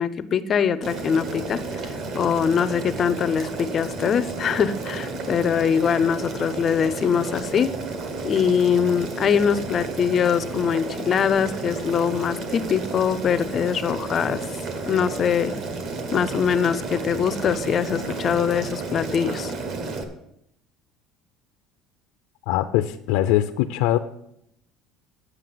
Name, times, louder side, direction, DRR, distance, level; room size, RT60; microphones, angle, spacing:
voice 1, 0.0-1.6 2.1-7.7 8.2-14.4 14.9-15.6 16.1-19.5, left 7 dB, 25° left, 13 dB, 0.5 m, -23 dB
Boiling, 0.8-20.0, right 3 dB, 45° right, 1.3 m, -32 dB
voice 2, 22.5-24.0, left 13 dB, 85° left, 8 dB, 0.5 m, -22 dB
9.2 x 6.4 x 7.6 m, 0.77 s
cardioid pair, 175°, 0 cm